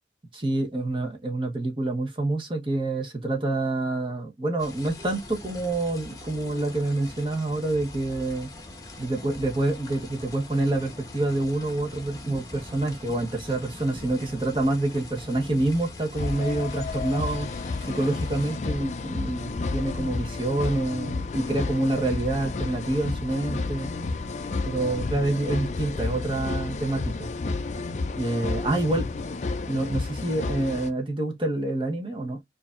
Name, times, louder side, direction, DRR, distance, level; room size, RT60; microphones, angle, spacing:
voice 1, 0.3-8.5 9.0-17.5 17.8-23.9 24.6-27.3 28.1-29.1 29.7-32.4, right 2 dB, 30° right, 1.0 m, -27 dB
sound 1, 4.6-18.6, left 2 dB, 20° left, 0.9 m, -42 dB
sound 2, 16.2-30.9, left 3 dB, 40° left, 0.4 m, -31 dB
4.7 x 2.7 x 2.4 m
head